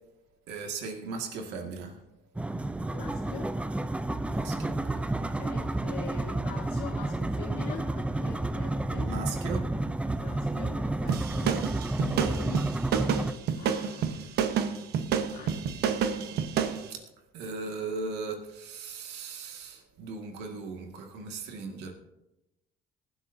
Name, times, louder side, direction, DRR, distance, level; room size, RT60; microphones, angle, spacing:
voice 1, 0.5-2.0 4.3-5.1 5.7-5.8 9.1-9.7 10.1-10.2 16.9-17.0 17.3-21.9, right 4 dB, 90° right, 3 dB, 2.0 m, -38 dB
sound 1, 2.4-13.3, right 2 dB, 5° right, 0.5 m, -31 dB
voice 2, 2.9-3.5 5.2-9.1 10.2-12.7 13.0-14.6 15.3-15.6, left 8 dB, 80° left, 0 dB, 1.3 m, -44 dB
sound 2, 11.1-16.8, right 7 dB, 75° right, 1.0 m, -29 dB
19.0 x 11.5 x 2.7 m, 0.92 s
cardioid pair, 110°, 17 cm